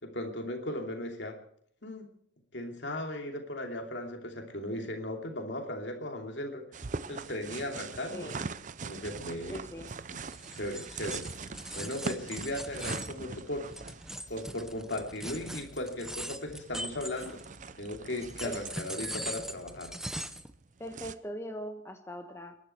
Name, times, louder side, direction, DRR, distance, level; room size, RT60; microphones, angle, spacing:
voice 1, 0.0-1.4 1.8-2.1 2.5-6.6 7.1-8.3 8.8-9.6 10.1-10.2 10.5-11.2 11.7-13.7 14.3-17.4 17.8-19.9, left 1 dB, 60° left, 3 dB, 2.8 m, -37 dB
sound 1, 6.7-21.2, right 4 dB, 40° right, 0.6 m, -43 dB
voice 2, 8.1-8.4 9.5-9.9 18.4-18.6 20.8-22.5, equal, 15° left, 5 dB, 1.3 m, -41 dB
sound 2, 8.8-20.5, equal, 40° left, 5.8 m, -56 dB
sound 3, 10.2-17.7 18.2-20.5, right 1 dB, 5° right, 0.7 m, -41 dB
28.0 x 11.0 x 4.6 m, 0.66 s
head